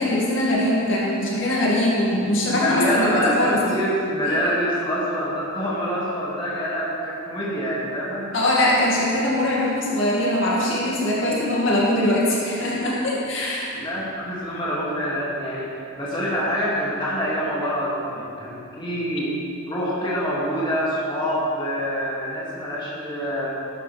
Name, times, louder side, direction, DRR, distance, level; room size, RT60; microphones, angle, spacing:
voice 1, 0.0-3.6 8.3-13.8, left 1 dB, 60° left, -5 dB, 2.3 m, -22 dB
voice 2, 2.5-8.3 13.7-15.7 16.0-19.3 19.7-23.6, equal, 20° left, -7 dB, 2.3 m, -26 dB
13.5 x 12.0 x 3.4 m, 2.6 s
head